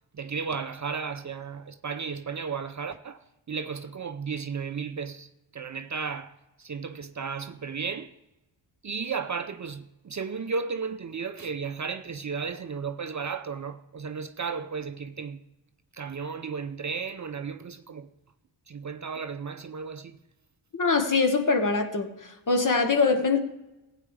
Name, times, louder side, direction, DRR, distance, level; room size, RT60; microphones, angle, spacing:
voice 1, 0.1-3.2 3.5-6.3 6.6-8.1 8.8-15.4 15.9-18.1 18.7-20.2, right 5 dB, 35° right, 0.6 m, -34 dB
voice 2, 20.7-22.1 22.5-23.4, left 4 dB, 40° left, 1.4 m, -23 dB
15.5 x 9.0 x 3.3 m
cardioid pair, 65°, 49 cm